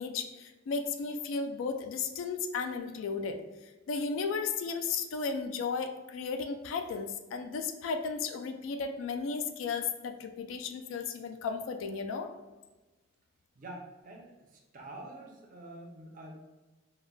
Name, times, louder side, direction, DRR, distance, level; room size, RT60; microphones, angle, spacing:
voice 1, 0.0-3.4 3.9-12.3, left 5 dB, 75° left, 7 dB, 0.3 m, -34 dB
voice 2, 13.6-16.5, right 1 dB, 40° right, 0 dB, 0.5 m, -47 dB
3.8 x 2.1 x 2.2 m, 1.2 s
head